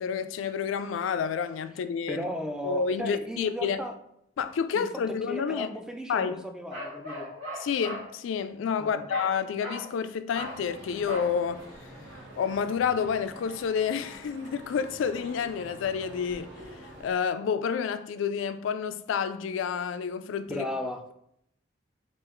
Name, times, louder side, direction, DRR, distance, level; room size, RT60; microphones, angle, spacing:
voice 1, 0.0-2.2 2.6-3.8 4.4-5.7 6.1-6.4 7.6-11.7 12.4-16.5 17.0-20.7, left 6 dB, 85° left, 0.3 m, -29 dB
voice 2, 2.1-3.9 4.7-7.3 8.8-9.0 20.5-21.0, equal, 5° right, 0.3 m, -35 dB
Bark, 6.7-8.1 9.1-9.3 9.6-9.9 10.3-10.6 11.1-11.3, equal, 35° right, 1.6 m, -38 dB
sound 1, 10.3-17.1, right 1 dB, 85° right, 1.0 m, -47 dB
3.7 x 2.4 x 4.4 m
head